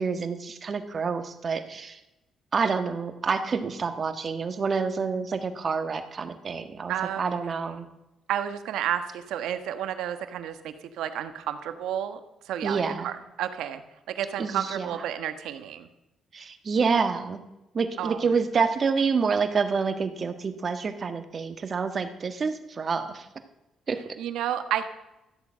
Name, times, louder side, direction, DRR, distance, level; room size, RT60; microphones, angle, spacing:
voice 1, 0.0-2.0 2.5-7.8 12.6-13.1 14.4-14.9 16.3-17.4 17.7-23.3 23.9-24.2, right 5 dB, 45° right, 8 dB, 1.5 m, -28 dB
voice 2, 6.9-7.8 8.3-12.2 12.4-13.8 14.1-15.9 18.0-18.2 24.2-24.9, right 10 dB, 85° right, 9 dB, 1.2 m, -31 dB
14.0 x 8.4 x 7.5 m, 0.95 s
cardioid pair, 90°, 0 cm